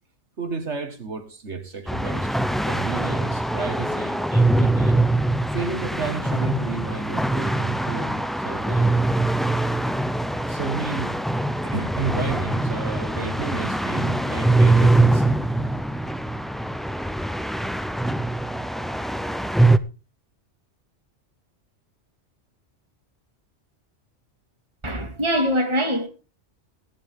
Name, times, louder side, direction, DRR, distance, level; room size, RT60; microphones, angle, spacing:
voice 1, 0.4-2.4 2.7-5.0 5.5-9.0 10.5-11.2 11.6-15.3, right 4 dB, 70° right, 2.1 m, -31 dB
sound 1, 1.9-19.8, right 2 dB, ahead, 0.3 m, -23 dB
voice 2, 24.8-26.1, equal, 25° right, 2.2 m, -23 dB
18.5 x 10.5 x 3.8 m
omnidirectional pair, 1.2 m